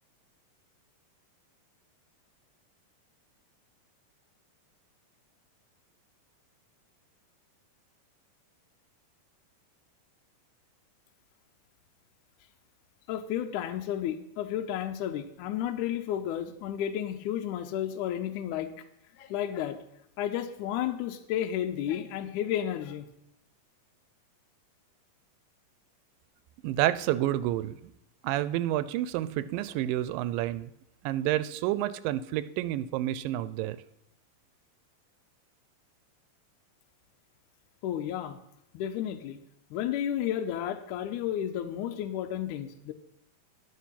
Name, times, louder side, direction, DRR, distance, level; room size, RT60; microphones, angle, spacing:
voice 1, 13.1-18.7 19.2-19.8 20.2-23.1 37.8-38.4 38.7-39.4 39.7-42.9, left 10 dB, 75° left, 6 dB, 2.0 m, -32 dB
voice 2, 26.6-27.7 28.2-30.7 31.0-33.8, right 14 dB, 85° right, 14 dB, 2.2 m, -29 dB
12.0 x 8.2 x 5.7 m, 0.80 s
omnidirectional pair, 3.9 m